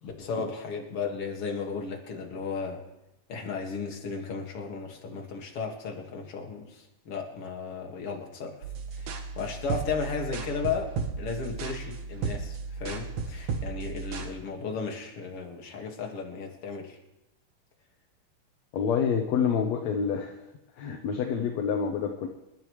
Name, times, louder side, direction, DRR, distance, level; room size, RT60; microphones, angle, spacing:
voice 1, 0.0-2.8 3.3-8.6 8.9-17.0, left 5 dB, 45° left, 1 dB, 2.6 m, -35 dB
sound 1, 8.6-14.3, right 5 dB, 60° right, 2.1 m, -34 dB
voice 2, 18.7-20.3 20.8-22.3, left 6 dB, 65° left, 3 dB, 1.9 m, -27 dB
27.5 x 12.0 x 3.2 m, 0.91 s
omnidirectional pair, 3.9 m